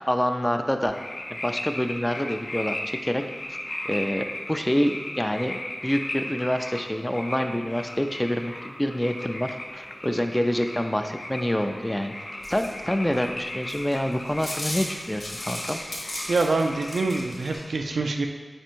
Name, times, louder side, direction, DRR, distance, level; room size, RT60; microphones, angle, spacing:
voice 1, 0.1-1.0 1.3-3.2 3.5-3.6 3.8-12.1 12.5-15.8, equal, 15° left, 6 dB, 0.3 m, -27 dB
sound 1, 0.8-17.6, left 1 dB, 55° left, 0.6 m, -37 dB
sound 2, 12.4-17.6, left 1 dB, 80° left, 1.0 m, -36 dB
voice 2, 16.3-18.3, right 3 dB, 90° right, 4 dB, 0.3 m, -25 dB
4.3 x 2.5 x 4.4 m, 1.4 s
cardioid pair, 45°, 0 cm